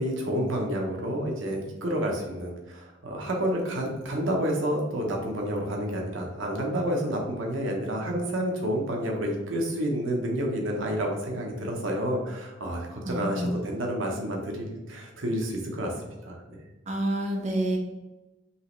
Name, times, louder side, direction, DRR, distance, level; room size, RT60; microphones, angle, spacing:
voice 1, 0.0-16.7, equal, 70° right, 0 dB, 0.9 m, -29 dB
voice 2, 13.0-13.5 16.9-17.8, right 1 dB, 35° right, 1 dB, 0.8 m, -28 dB
5.5 x 3.0 x 3.1 m, 1.0 s
head